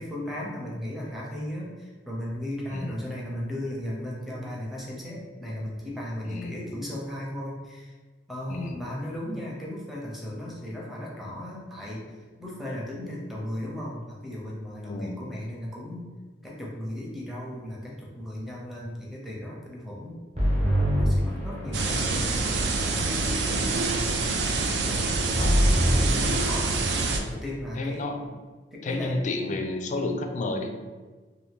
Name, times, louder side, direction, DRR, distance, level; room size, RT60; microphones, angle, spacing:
voice 1, 0.0-8.0 8.3-12.1 12.4-16.1 16.4-20.2 20.9-23.7 24.8-25.7 26.0-26.8 27.3-28.0 28.7-29.2 29.5-29.6, left 1 dB, ahead, -5 dB, 0.6 m, -36 dB
voice 2, 6.2-6.6 8.5-8.8 14.9-15.2 25.4-25.8 27.8-28.4 28.8-30.8, left 2 dB, 40° left, 5 dB, 0.3 m, -31 dB
sound 1, 20.3-22.0 25.3-26.2, equal, 35° right, 0.9 m, -23 dB
sound 2, 21.7-27.2, right 3 dB, 65° right, 0.4 m, -26 dB
2.7 x 2.6 x 3.5 m, 1.4 s
head